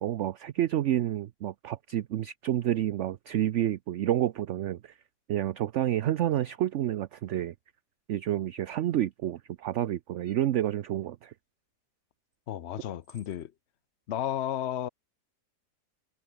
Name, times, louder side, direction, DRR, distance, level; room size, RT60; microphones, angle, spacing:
voice 1, 0.0-5.0 5.3-7.5 8.1-11.3, right 12 dB, 60° right, 0.8 m, -29 dB
sound 1, 6.3-6.6 8.7-9.1 10.2-10.6 12.3-12.4 13.0-13.4, right 2 dB, 45° right, 5.8 m, -62 dB
voice 2, 12.5-13.5 14.1-14.9, left 11 dB, 55° left, 0.8 m, -33 dB
omnidirectional pair, 1.7 m